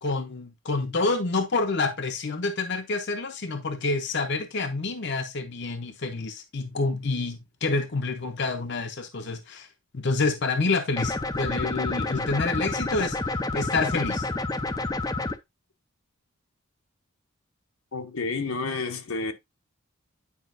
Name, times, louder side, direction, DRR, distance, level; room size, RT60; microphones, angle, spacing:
voice 1, 0.0-9.7 9.9-14.3, left 3 dB, 55° left, 0.7 m, -28 dB
sound 1, 11.0-15.4, left 2 dB, 15° left, 0.5 m, -29 dB
voice 2, 17.9-19.3, left 3 dB, 80° left, 1.1 m, -30 dB
9.5 x 5.0 x 2.6 m
head